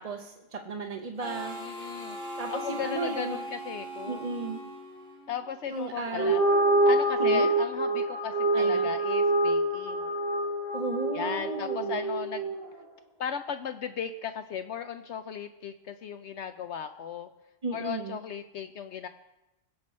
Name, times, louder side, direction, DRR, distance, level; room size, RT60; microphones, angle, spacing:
voice 1, 0.0-1.6 2.4-3.4 4.1-4.6 5.7-6.3 7.2-7.5 8.5-8.9 10.7-11.9 17.6-18.2, right 3 dB, 35° right, 4 dB, 0.7 m, -35 dB
Harmonica, 1.2-5.7, equal, 5° left, 2.0 m, -39 dB
voice 2, 1.6-2.2 2.5-4.2 5.3-6.4 6.8-10.0 11.1-12.5 13.2-17.3 17.7-19.1, left 7 dB, 70° left, 9 dB, 0.8 m, -36 dB
sound 1, 6.1-12.7, right 2 dB, 35° left, 1.9 m, -26 dB
21.5 x 7.9 x 4.2 m, 0.99 s
omnidirectional pair, 1.3 m